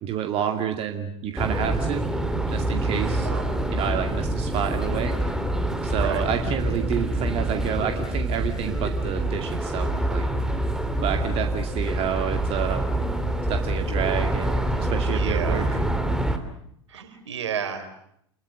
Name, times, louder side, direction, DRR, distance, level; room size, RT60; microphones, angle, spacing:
voice 1, 0.0-2.1 2.5-3.3 3.7-5.1 5.8-10.3 11.0-12.9 13.5-15.8, right 9 dB, 40° right, 5 dB, 2.3 m, -29 dB
sound 1, 1.4-16.4, right 1 dB, 5° right, 2.9 m, -26 dB
voice 2, 3.2-3.6 5.9-6.3 15.1-15.7 16.9-17.9, right 7 dB, 70° right, 8 dB, 4.2 m, -32 dB
28.0 x 22.0 x 7.7 m, 0.73 s
figure-of-eight pair, 85°, 15 cm